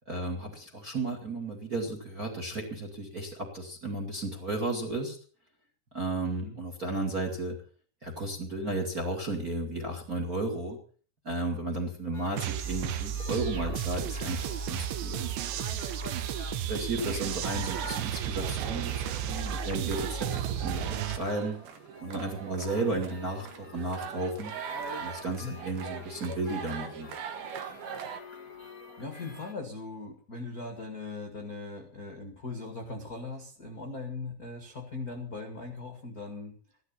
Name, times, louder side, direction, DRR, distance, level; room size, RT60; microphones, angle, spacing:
voice 1, 0.0-5.2 5.9-7.6 8.0-10.8 11.2-15.2 16.7-21.6 22.0-24.5 25.0-27.1, right 2 dB, 30° right, 4 dB, 1.8 m, -33 dB
sound 1, 12.1-29.5, left 2 dB, 25° left, 2.0 m, -49 dB
sound 2, 12.4-21.2, right 9 dB, 85° right, 3.3 m, -33 dB
sound 3, 17.4-28.2, right 7 dB, 70° right, 2.8 m, -41 dB
voice 2, 29.0-36.5, left 3 dB, 50° left, 4 dB, 1.0 m, -40 dB
15.0 x 12.5 x 5.8 m, 0.42 s
omnidirectional pair, 5.2 m